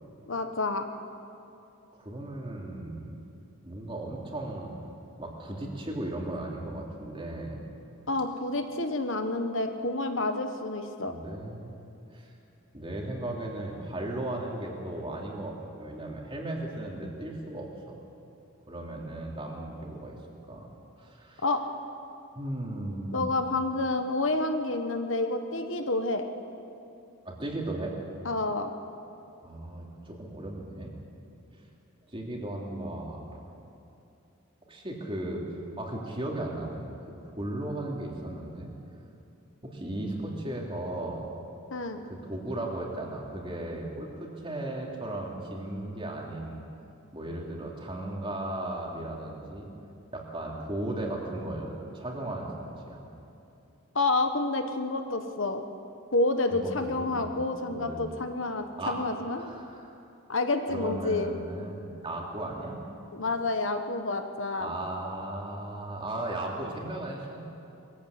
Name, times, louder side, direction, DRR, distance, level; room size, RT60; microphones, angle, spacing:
voice 1, 0.3-0.9 8.1-11.1 21.4-21.6 23.1-26.2 28.2-28.7 41.7-42.0 53.9-55.6 56.1-59.5 60.3-61.3 63.1-64.7, left 2 dB, 65° left, 7 dB, 1.2 m, -29 dB
voice 2, 1.9-3.1 3.6-4.8 5.2-7.7 11.1-11.7 12.1-12.3 12.7-18.0 18.7-20.2 20.5-20.7 21.0-21.4 22.3-23.4 27.2-27.9 29.4-31.0 32.1-33.4 34.7-35.4 35.8-36.9 37.2-38.7 39.6-41.3 42.0-46.6 47.1-49.7 50.1-52.5 52.9-53.0 56.5-56.7 57.0-58.1 58.8-59.0 59.4-59.9 60.7-62.8 64.6-67.4, right 1 dB, 25° right, -1 dB, 2.9 m, -36 dB
21.5 x 15.0 x 8.3 m, 2.8 s
head